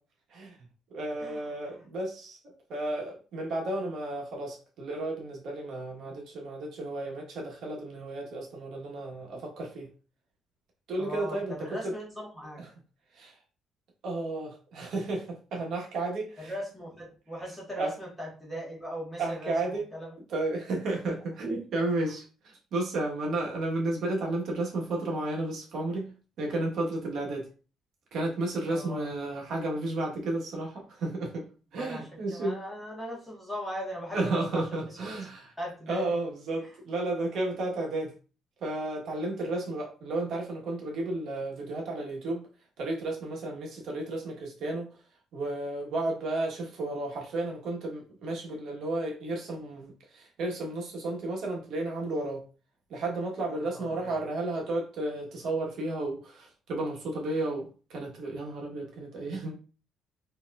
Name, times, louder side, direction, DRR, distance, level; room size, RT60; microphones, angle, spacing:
voice 1, 0.9-9.9 10.9-11.9 12.6-12.7 13.1-13.4 14.0-16.5 17.8-17.9 19.2-19.9 20.3-26.1 26.4-27.5 28.1-31.4 31.7-32.6 34.1-35.5 35.9-38.1 38.6-42.4 42.8-44.9 45.3-52.4 52.9-59.6, right 2 dB, 50° right, 0 dB, 1.2 m, -33 dB
voice 2, 11.0-12.6 16.4-20.1 28.7-29.1 31.7-35.1 35.6-36.1 53.5-54.1, equal, ahead, -5 dB, 1.4 m, -39 dB
4.4 x 2.8 x 2.4 m, 0.35 s
cardioid pair, 170°, 0 cm